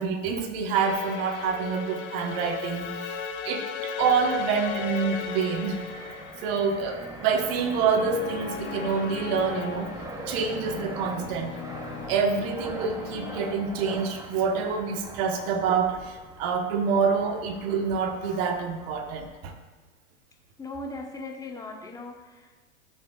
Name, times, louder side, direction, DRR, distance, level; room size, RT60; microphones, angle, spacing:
voice 1, 0.0-5.8 6.4-9.9 10.3-11.6 12.1-19.5, right 5 dB, 50° right, 5 dB, 1.3 m, -27 dB
sound 1, 0.7-13.5, left 6 dB, 30° left, 0.8 m, -37 dB
Fixed-wing aircraft airplane, 4.0-19.3, right 2 dB, 10° right, 0.8 m, -42 dB
voice 2, 20.6-22.7, left 2 dB, 10° left, 2 dB, 1.0 m, -39 dB
13.0 x 6.5 x 2.4 m, 1.3 s
hypercardioid pair, 110°, 37 cm